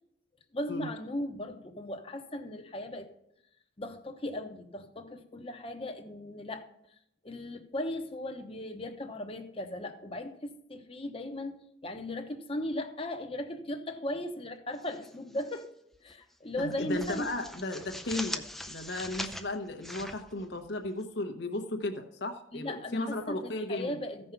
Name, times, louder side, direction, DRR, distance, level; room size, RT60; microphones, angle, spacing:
voice 1, 0.5-3.1 3.8-6.7 7.2-15.7 16.0-17.3 22.5-24.3, left 1 dB, 30° left, 6 dB, 1.0 m, -37 dB
sound 1, 14.7-15.6 15.9-16.1 16.5-21.0, left 1 dB, ahead, 0.5 m, -42 dB
voice 2, 16.6-24.0, left 2 dB, 60° left, 3 dB, 1.0 m, -35 dB
15.0 x 5.4 x 5.8 m, 0.78 s
head